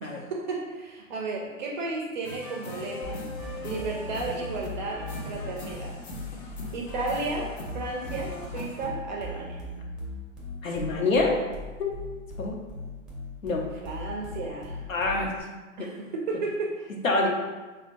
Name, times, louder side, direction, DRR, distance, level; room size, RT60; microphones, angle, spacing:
voice 1, 0.0-3.3 3.6-6.0 6.7-9.6 13.7-14.9 15.8-16.9, right 3 dB, 35° right, -1 dB, 0.5 m, -33 dB
sound 1, 2.2-8.9, left 2 dB, 35° left, 0.6 m, -40 dB
sound 2, 3.0-15.4, left 2 dB, ahead, 0.8 m, -39 dB
voice 2, 10.6-11.4 11.8-11.9 12.4-12.6 13.4-13.6 14.9-15.3 15.8-15.9 17.0-17.3, left 3 dB, 75° left, 0 dB, 0.9 m, -25 dB
5.1 x 2.2 x 2.5 m, 1.3 s
hypercardioid pair, 120°, 40 cm